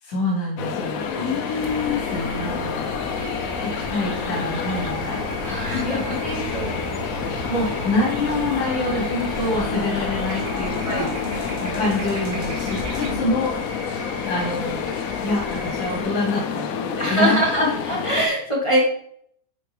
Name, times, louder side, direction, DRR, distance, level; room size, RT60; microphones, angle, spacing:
voice 1, 0.0-1.1 2.1-2.9 3.6-5.2 5.8-6.4 7.5-11.1 11.6-13.5 14.3-14.9 15.2-17.4, left 2 dB, 90° left, -2 dB, 1.9 m, -26 dB
sound 1, 0.6-18.3, left 7 dB, 75° left, 0.8 m, -29 dB
sound 2, 1.0-16.0, equal, 25° right, 2.3 m, -39 dB
voice 2, 1.2-2.3 5.4-6.2 6.5-7.0 10.8-11.8 13.0-13.2 17.0-18.8, equal, 20° left, -3 dB, 1.0 m, -24 dB
sound 3, 1.6-13.1, right 3 dB, 85° right, 1.8 m, -35 dB
7.7 x 4.2 x 3.3 m, 0.65 s
omnidirectional pair, 2.1 m